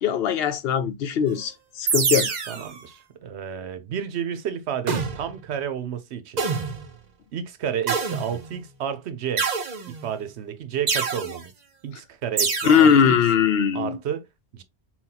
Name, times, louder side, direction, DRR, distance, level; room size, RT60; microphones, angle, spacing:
voice 1, 0.0-2.3 12.6-14.0, left 7 dB, 70° left, 0.8 m, -20 dB
sound 1, 1.9-2.7 4.9-5.4 6.4-6.9 7.9-8.6 9.4-10.1 10.9-11.4 12.4-13.0, right 5 dB, 45° right, 0.7 m, -26 dB
voice 2, 2.5-6.4 7.3-9.5 9.9-11.5 11.8-13.2 13.7-14.3 14.5-14.6, right 8 dB, 85° right, 0.9 m, -31 dB
5.7 x 2.3 x 2.8 m
omnidirectional pair, 1.1 m